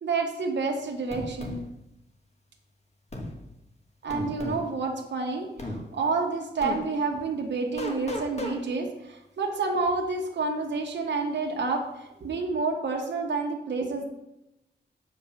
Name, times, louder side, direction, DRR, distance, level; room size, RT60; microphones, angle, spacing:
voice 1, 0.0-1.6 4.0-14.1, right 4 dB, 75° right, 1 dB, 1.1 m, -29 dB
sound 1, 1.1-1.6 3.1-3.3 4.1-4.6 5.6-5.8 6.6-6.8 7.8-8.6, left 1 dB, 35° left, 1.5 m, -33 dB
7.2 x 4.8 x 5.7 m, 0.90 s
wide cardioid pair, 100°, 18 cm